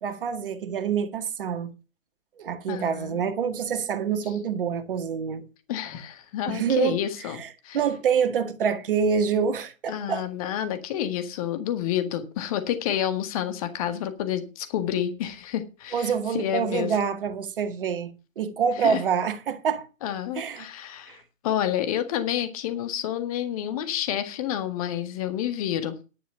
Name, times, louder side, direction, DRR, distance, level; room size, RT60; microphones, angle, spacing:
voice 1, 0.0-1.7 2.4-5.5 6.5-7.0 7.4-7.5 7.7-10.2 15.9-19.9 20.4-20.7 21.1-21.2, right 7 dB, 40° right, 1.9 m, -26 dB
voice 2, 2.7-3.2 5.7-7.8 9.9-17.0 18.8-19.0 20.0-26.0, left 10 dB, 25° left, 1.7 m, -29 dB
10.5 x 9.3 x 5.8 m
figure-of-eight pair, 130°, 40 cm